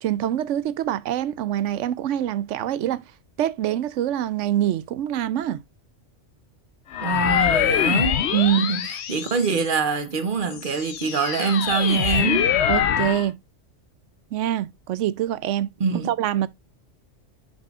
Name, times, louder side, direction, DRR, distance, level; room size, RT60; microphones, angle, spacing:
voice 1, 0.0-3.0 3.4-5.6 8.3-8.7 12.7-13.4 14.3-15.7 16.0-16.5, right 11 dB, 90° right, 0.9 m, -24 dB
sound 1, 6.9-9.8 10.4-13.3, left 9 dB, 70° left, 0.9 m, -24 dB
voice 2, 7.0-8.2 8.6-12.5 15.8-16.1, right 5 dB, 50° right, 1.1 m, -24 dB
8.9 x 5.3 x 2.4 m
omnidirectional pair, 1.2 m